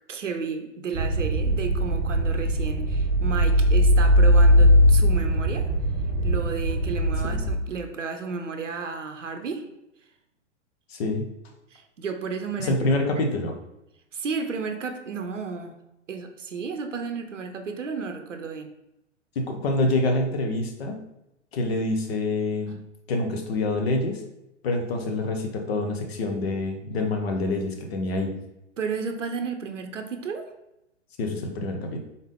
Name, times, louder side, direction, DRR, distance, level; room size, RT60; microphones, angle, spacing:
voice 1, 0.1-5.7 6.2-9.7 11.7-12.8 13.2-13.3 14.1-15.8 16.1-18.7 28.8-30.5, right 5 dB, 85° right, 6 dB, 0.6 m, -32 dB
sound 1, 0.9-7.5, equal, 25° right, 1.0 m, -20 dB
voice 2, 10.9-11.3 12.6-13.5 19.3-21.0 21.5-22.8 23.1-24.2 24.6-28.3 31.2-32.0, left 2 dB, 55° left, 4 dB, 1.0 m, -26 dB
4.0 x 3.6 x 3.5 m, 0.87 s
figure-of-eight pair, 110°, 36 cm